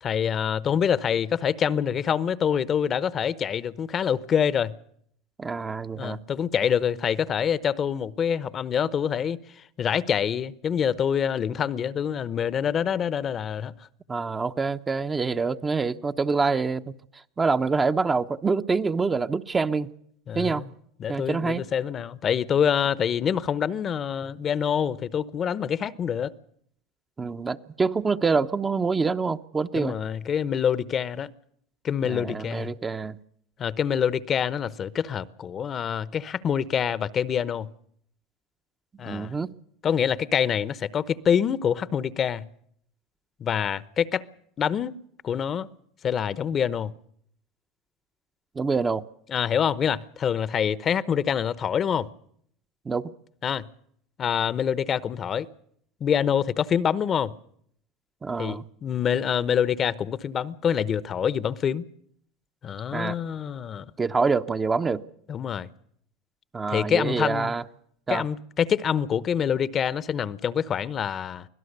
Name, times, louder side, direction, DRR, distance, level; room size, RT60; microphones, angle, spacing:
voice 1, 0.0-4.7 6.0-9.4 9.8-13.7 20.3-20.6 21.0-26.3 29.7-31.3 31.8-32.7 33.6-37.7 39.0-39.3 39.8-42.5 43.4-44.2 44.6-45.0 45.2-45.7 46.0-46.9 49.3-52.1 53.4-53.6 54.2-55.5 56.0-57.3 58.4-61.8 62.6-63.8 65.3-65.7 66.7-67.5 68.1-71.5, left 8 dB, 35° left, 0.9 m, -26 dB
voice 2, 5.4-6.2 14.1-16.9 17.4-19.9 20.3-20.6 21.1-21.6 27.2-29.9 32.0-33.2 39.0-39.5 48.6-49.0 52.9-53.1 58.2-58.6 62.9-63.2 64.0-65.0 66.5-67.6 68.1-68.2, right 4 dB, 20° right, 0.8 m, -26 dB
24.5 x 17.0 x 6.7 m
supercardioid pair, 100°, 0 cm